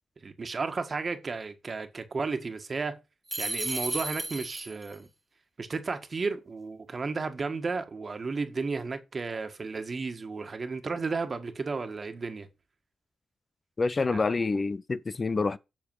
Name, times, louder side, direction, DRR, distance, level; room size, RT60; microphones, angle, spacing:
voice 1, 0.2-3.0 3.4-5.1 5.6-12.5 14.1-14.2, right 4 dB, 45° right, 1.6 m, -33 dB
sound 1, 3.3-5.0, right 2 dB, 25° right, 1.5 m, -33 dB
voice 2, 13.8-15.6, left 3 dB, 40° left, 0.5 m, -27 dB
7.7 x 6.6 x 4.7 m
supercardioid pair, 45°, 0 cm